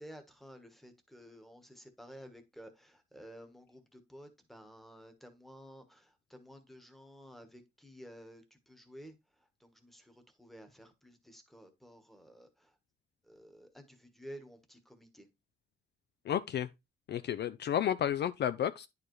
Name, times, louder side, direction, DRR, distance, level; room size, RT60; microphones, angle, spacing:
voice 1, 0.0-9.1 9.6-10.1 10.4-12.5 13.3-15.3, equal, ahead, 1.2 m, -53 dB
voice 2, 16.3-16.7 17.1-18.9, left 10 dB, 55° left, 0.4 m, -31 dB
10.0 x 4.8 x 3.1 m
cardioid pair, 140°, 21 cm